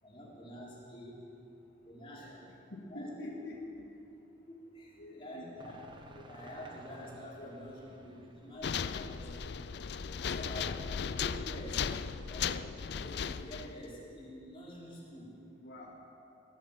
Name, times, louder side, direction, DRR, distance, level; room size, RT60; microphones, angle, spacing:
voice 1, 0.0-1.3 1.8-2.3 2.9-3.1 4.5-5.8 6.2-9.4 10.0-10.8 11.2-11.8 12.3-12.6 12.9-15.4, equal, 30° left, -6 dB, 4.0 m, -47 dB
voice 2, 2.1-2.4 2.7-3.9 5.0-5.6 6.1-6.2 7.4-7.5 8.5-8.6 15.6-15.9, left 1 dB, 80° left, -6 dB, 2.4 m, -47 dB
sound 1, 5.6-12.8, right 1 dB, 25° right, 1.1 m, -55 dB
sound 2, 8.6-13.8, left 7 dB, 60° left, 0.4 m, -36 dB
18.0 x 11.0 x 7.3 m, 2.8 s
head